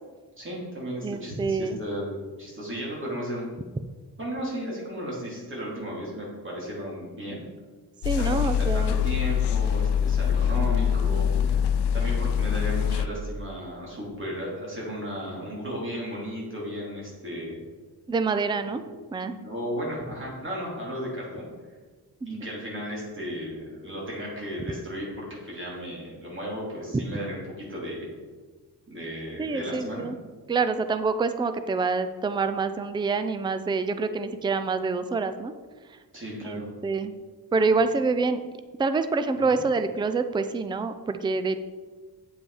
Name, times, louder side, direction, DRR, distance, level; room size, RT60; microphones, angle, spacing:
voice 1, 0.4-3.5 4.2-7.4 8.1-11.6 11.9-17.6 18.6-18.9 19.2-21.5 22.3-28.1 28.9-30.1 36.1-36.7 37.7-37.8 39.4-39.6, equal, 30° right, -4 dB, 3.1 m, -35 dB
voice 2, 1.0-1.8 8.0-8.9 18.1-18.8 19.1-19.3 22.3-22.5 26.9-27.0 29.4-30.2 30.5-35.5 36.4-37.2 37.5-38.4 38.8-41.6, right 4 dB, 15° right, 10 dB, 0.4 m, -26 dB
sound 1, 8.0-13.1, left 8 dB, 90° left, 0.6 m, -24 dB
8.7 x 7.7 x 4.9 m, 1.4 s
wide cardioid pair, 160°, 39 cm